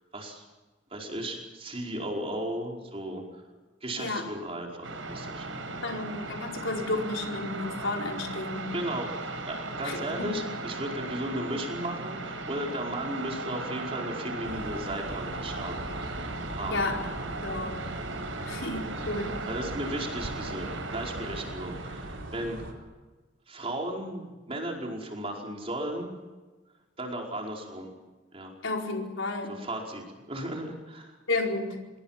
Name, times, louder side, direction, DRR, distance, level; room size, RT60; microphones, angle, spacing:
voice 1, 0.1-0.4 0.9-3.2 3.8-5.7 8.7-9.1 9.4-15.8 16.5-16.8 17.4-17.5 19.5-22.9 23.5-26.1 27.0-27.9 28.3-28.5 29.5-31.2, right 1 dB, 30° right, 0 dB, 5.0 m, -35 dB
voice 2, 4.0-4.3 5.7-8.8 9.8-10.4 16.7-17.0 17.4-17.8 18.5-19.4 28.6-29.6 31.3-31.8, left 2 dB, 80° left, 1 dB, 4.7 m, -32 dB
sound 1, 4.8-22.2, right 3 dB, 85° right, 5.2 m, -37 dB
sound 2, 14.4-22.7, right 1 dB, 65° right, 4.3 m, -40 dB
27.0 x 21.5 x 6.0 m, 1.2 s
head